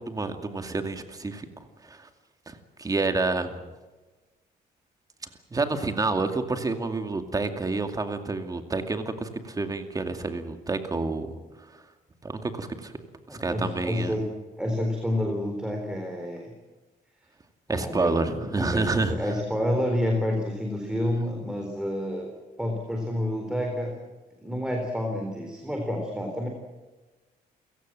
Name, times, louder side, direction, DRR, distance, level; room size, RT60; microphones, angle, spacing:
voice 1, 0.0-1.5 1.8-2.1 2.5-3.6 5.5-11.3 11.7-11.8 12.2-12.9 13.3-14.1 17.7-19.1, right 3 dB, 20° right, 7 dB, 2.3 m, -29 dB
voice 2, 13.3-14.2 14.6-16.5 17.7-22.3 22.6-23.9 24.4-26.5, left 1 dB, 5° right, 2 dB, 3.9 m, -29 dB
30.0 x 17.0 x 7.6 m, 1.2 s
cardioid pair, 130°, 16 cm